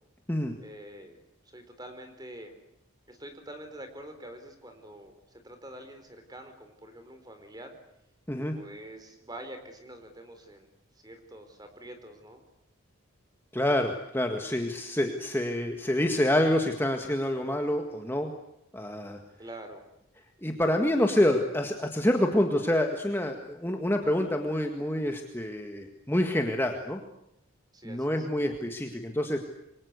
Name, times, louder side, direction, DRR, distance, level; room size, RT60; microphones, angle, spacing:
voice 1, 0.6-1.2 1.4-2.5 3.1-7.7 8.5-12.4 19.4-19.8 27.7-28.3, right 1 dB, 20° right, 7 dB, 4.2 m, -46 dB
voice 2, 13.5-18.3 18.7-19.2 20.4-27.0 27.8-29.4, left 1 dB, 10° left, 4 dB, 1.8 m, -27 dB
28.0 x 23.5 x 8.3 m, 0.83 s
head